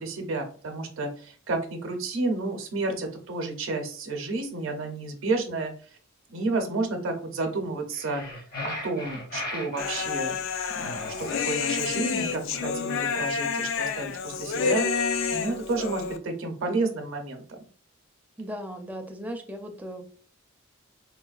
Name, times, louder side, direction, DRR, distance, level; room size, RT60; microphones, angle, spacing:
voice 1, 0.0-5.7 6.3-8.2 8.6-10.4 10.7-15.1 15.3-17.6, right 3 dB, 70° right, 4 dB, 0.6 m, -31 dB
sound 1, 7.9-10.1 10.7-12.0, left 2 dB, 45° left, 0.8 m, -37 dB
Human voice, 9.8-16.2, left 5 dB, 65° left, 0.3 m, -29 dB
voice 2, 18.4-20.0, equal, 10° right, 4 dB, 0.4 m, -37 dB
3.8 x 2.2 x 2.4 m, 0.43 s
head